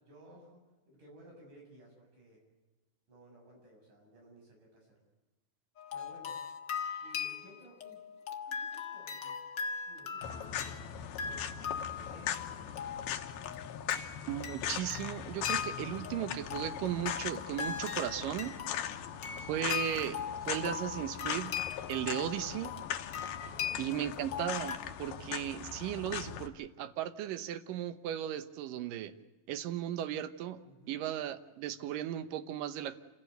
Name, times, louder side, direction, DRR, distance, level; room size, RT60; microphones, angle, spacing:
voice 1, 0.1-2.5 3.1-5.0 5.9-6.4 7.0-8.0 8.5-9.5 9.9-11.5 11.9-13.6 23.5-24.1 30.6-31.0, right 1 dB, 55° right, 0 dB, 8.4 m, -57 dB
sound 1, 5.8-24.8, left 7 dB, 65° left, 1.1 m, -40 dB
sound 2, 10.2-26.5, left 10 dB, 85° left, 2.9 m, -40 dB
voice 2, 14.3-18.5 19.5-20.2 20.5-21.5 21.9-22.7 23.8-29.1 29.5-30.6 30.9-33.0, right 11 dB, 70° right, 11 dB, 2.5 m, -36 dB
28.0 x 16.5 x 8.0 m, 1.1 s
omnidirectional pair, 4.3 m